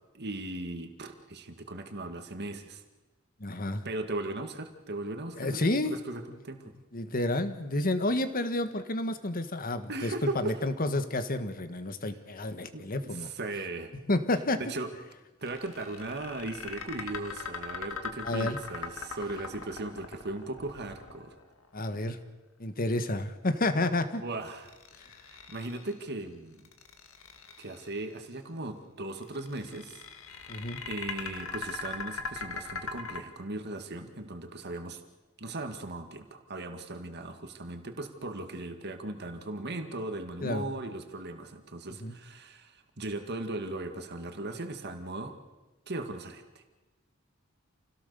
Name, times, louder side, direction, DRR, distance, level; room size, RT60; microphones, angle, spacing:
voice 1, 0.1-2.8 3.8-6.7 9.9-10.6 12.7-13.9 14.6-15.0 15.4-21.3 21.9-22.0 24.2-24.7 25.3-26.7 27.6-30.0 30.9-35.0 35.4-45.4 45.9-46.4, right 2 dB, 55° right, 6 dB, 2.1 m, -38 dB
voice 2, 3.4-3.9 5.4-5.9 6.9-13.3 14.1-14.6 18.2-18.6 21.7-22.2 22.6-24.2 30.5-30.8 40.4-40.7 42.0-42.1, left 2 dB, 45° left, 10 dB, 1.6 m, -30 dB
sound 1, 15.4-21.7 24.5-26.0 26.6-27.9 29.2-33.2, left 5 dB, 75° left, 2.0 m, -40 dB
28.0 x 17.0 x 7.0 m, 1.2 s
head